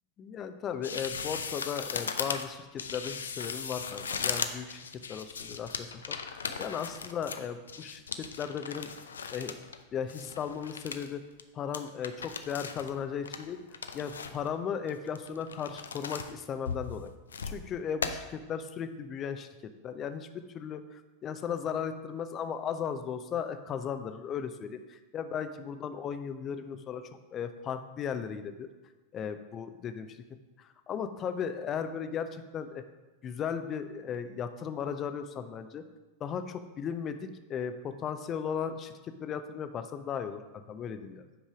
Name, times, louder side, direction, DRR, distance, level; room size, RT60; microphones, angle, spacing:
voice 1, 0.2-4.8 5.1-8.9 9.3-9.6 9.9-11.2 11.5-13.6 13.9-17.1 17.4-19.5 19.8-20.3 20.5-27.0 27.3-28.7 29.1-30.2 30.6-32.8 33.2-35.8 36.2-41.2, left 7 dB, 30° left, 10 dB, 0.6 m, -36 dB
sound 1, 0.8-9.8 10.1-11.1 11.4-11.5 11.7-12.9 13.2-14.5 14.9-16.3 16.7-17.6 18.0-18.1, left 6 dB, 70° left, 0.6 m, -37 dB
8.8 x 5.5 x 4.9 m, 1.2 s
figure-of-eight pair, 90°, 0 cm